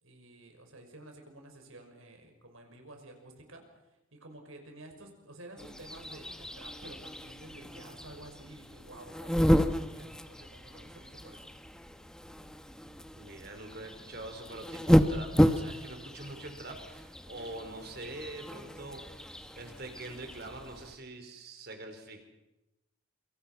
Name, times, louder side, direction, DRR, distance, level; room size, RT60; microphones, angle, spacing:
voice 1, 0.0-11.5, right 1 dB, 75° right, 4 dB, 6.0 m, -51 dB
sound 1, 5.6-21.0, equal, 5° left, 1.1 m, -32 dB
voice 2, 13.2-22.2, right 2 dB, 50° right, 5 dB, 4.6 m, -44 dB
28.0 x 25.0 x 5.9 m, 0.96 s
head